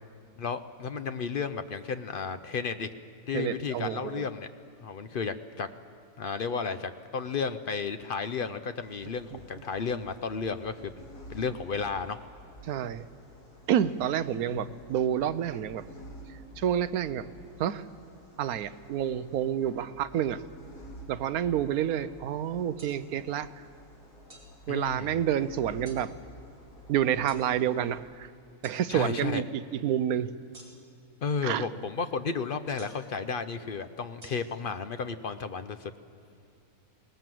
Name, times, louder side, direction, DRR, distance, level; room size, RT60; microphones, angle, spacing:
voice 1, 0.4-2.9 3.3-4.5 4.8-5.7 6.2-11.0 11.3-12.2 14.5-14.7 24.7-25.2 28.9-29.4 31.2-35.9, left 5 dB, 60° left, 10 dB, 0.5 m, -33 dB
voice 2, 3.3-4.3 9.3-9.4 12.6-13.0 13.7-15.9 16.3-17.3 17.6-17.9 18.4-20.4 21.1-23.7 24.7-26.1 26.9-28.3 28.6-30.3 31.4-31.7, right 10 dB, 70° right, 13 dB, 1.1 m, -29 dB
sound 1, 8.8-28.0, equal, 80° left, 4.0 m, -51 dB
sound 2, 22.8-22.9 24.3-24.5 25.8-26.0 27.3-27.4 28.6-28.8 30.5-31.0 32.8-33.1 34.2-34.3, right 2 dB, 35° right, 3.0 m, -50 dB
21.5 x 18.5 x 7.7 m, 2.7 s
omnidirectional pair, 1.7 m